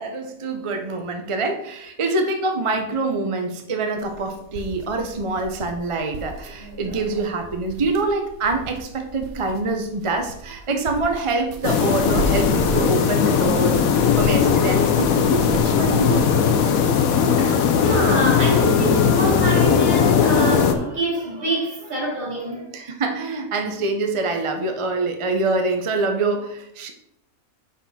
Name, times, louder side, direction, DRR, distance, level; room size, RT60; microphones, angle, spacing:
voice 1, 0.0-16.5 22.7-26.9, right 3 dB, 30° right, 5 dB, 0.6 m, -25 dB
sound 1, 4.0-16.3, right 1 dB, 85° right, 1.3 m, -36 dB
voice 2, 6.5-7.0 16.3-16.5 17.3-22.7, right 1 dB, 65° right, -4 dB, 3.3 m, -26 dB
sound 2, 11.6-20.7, left 7 dB, 80° left, 1.2 m, -18 dB
6.9 x 6.1 x 4.1 m, 0.79 s
omnidirectional pair, 1.5 m